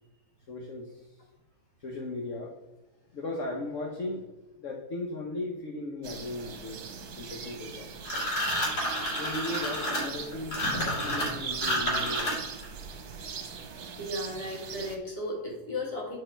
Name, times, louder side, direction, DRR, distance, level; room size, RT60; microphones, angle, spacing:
voice 1, 0.5-1.0 1.8-2.5 3.1-4.3 4.6-6.8 7.2-7.9 9.2-10.6 10.8-12.4, left 2 dB, 55° left, 0 dB, 1.2 m, -37 dB
sound 1, 6.0-15.0, right 6 dB, 75° right, 1.4 m, -39 dB
sound 2, 8.0-12.6, equal, 80° left, 2.7 m, -30 dB
voice 2, 10.6-11.3 14.0-16.2, left 1 dB, 20° left, -3 dB, 2.1 m, -35 dB
8.9 x 4.2 x 4.5 m, 1.1 s
omnidirectional pair, 1.7 m